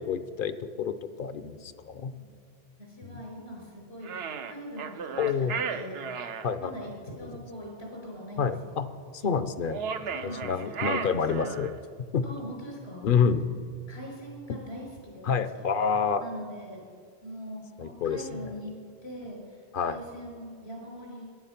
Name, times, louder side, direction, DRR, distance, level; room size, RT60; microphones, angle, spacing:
voice 1, 0.0-2.1 3.0-3.2 5.2-5.5 6.4-6.7 7.2-7.3 8.4-8.9 9.1-9.8 10.2-11.7 12.0-12.2 13.0-13.5 15.2-16.2 17.8-18.4 19.7-20.0, left 6 dB, 60° left, 12 dB, 0.8 m, -28 dB
voice 2, 1.9-2.3 2.8-5.1 5.7-6.0 6.3-8.5 10.1-11.6 12.2-13.1 13.9-15.6 16.2-16.8 17.2-18.7 19.0-21.3, equal, 90° left, -1 dB, 5.1 m, -42 dB
sound 1, 4.0-6.5 9.7-11.8, right 6 dB, 80° right, 0.9 m, -34 dB
15.0 x 11.0 x 5.8 m, 2.1 s
omnidirectional pair, 1.0 m